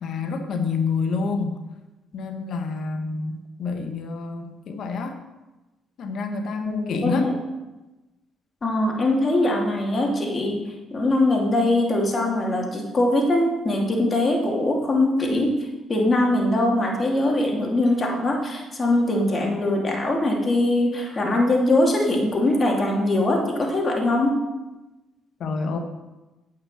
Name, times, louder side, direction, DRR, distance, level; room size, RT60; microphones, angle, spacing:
voice 1, 0.0-1.6 2.1-5.2 6.0-7.3 25.4-25.8, left 4 dB, 65° left, 6 dB, 1.4 m, -28 dB
voice 2, 6.7-7.3 8.6-10.6 10.9-15.6 15.9-24.4, left 1 dB, 35° left, 0 dB, 2.7 m, -22 dB
9.1 x 5.6 x 7.3 m, 1.1 s
cardioid pair, 80°, 0 cm